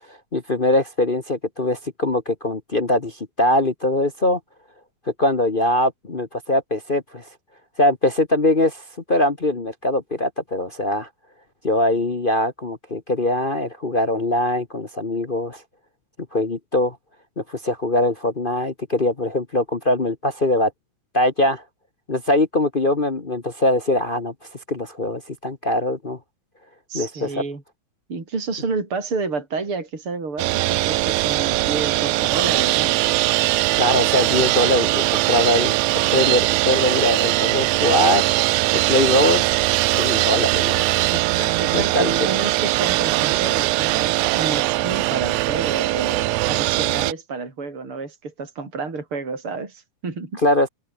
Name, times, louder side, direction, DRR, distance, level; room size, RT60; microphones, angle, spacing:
voice 1, 0.1-4.4 5.2-7.3 7.8-11.1 11.6-15.6 16.3-17.0 17.4-20.7 21.1-21.6 22.1-26.2 26.9-27.4 33.8-38.3 38.7-39.5 39.9-42.3 50.4-50.7, left 1 dB, 45° left, 0.6 m, -22 dB
voice 2, 26.9-27.6 28.1-33.0 41.6-50.4, right 4 dB, 45° right, 5.9 m, -30 dB
sound 1, 30.4-47.1, right 19 dB, 80° right, 1.6 m, -21 dB
open air
omnidirectional pair, 3.3 m